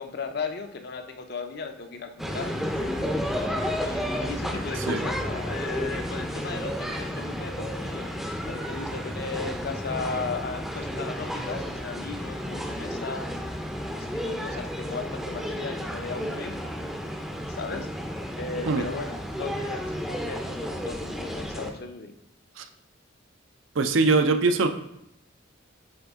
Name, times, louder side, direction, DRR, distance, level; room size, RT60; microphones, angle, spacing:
voice 1, 0.0-3.2 3.8-8.1 8.4-13.3 13.9-16.7 17.5-17.9 18.3-22.1, left 4 dB, 50° left, 6 dB, 0.6 m, -36 dB
sound 1, 2.2-21.7, equal, ahead, 0.5 m, -32 dB
voice 2, 23.7-24.7, right 3 dB, 70° right, 8 dB, 0.5 m, -22 dB
7.9 x 3.6 x 3.6 m, 0.79 s
head